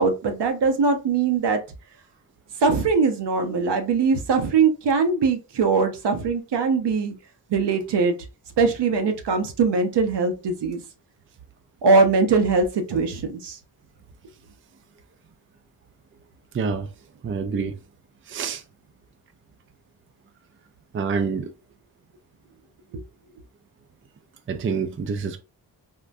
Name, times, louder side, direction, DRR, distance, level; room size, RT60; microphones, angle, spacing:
voice 1, 0.0-1.6 2.6-7.1 7.5-8.2 8.6-10.8 11.8-13.6, right 4 dB, 75° right, 0.8 m, -21 dB
voice 2, 16.5-16.9 17.2-17.8 18.3-18.6 20.9-21.5 24.5-25.4, right 5 dB, 30° right, 0.5 m, -27 dB
3.6 x 2.2 x 2.5 m
cardioid pair, 75°, 42 cm